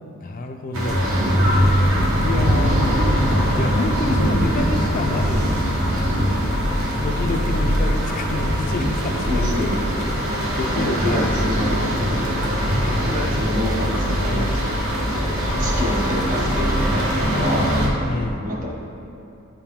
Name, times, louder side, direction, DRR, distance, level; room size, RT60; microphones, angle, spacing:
voice 1, 0.2-1.1 2.2-2.8 3.5-5.5 7.0-9.7 10.6-11.4 14.3-14.6 18.0-18.5, left 2 dB, 40° left, 4 dB, 0.4 m, -28 dB
sound 1, 0.7-17.9, equal, 70° right, 1.1 m, -21 dB
voice 2, 9.3-9.9 10.3-11.9 13.0-14.4 15.6-17.0 17.3-17.8 18.4-18.7, left 1 dB, 40° right, -3 dB, 1.2 m, -27 dB
9.3 x 4.5 x 3.6 m, 2.8 s
head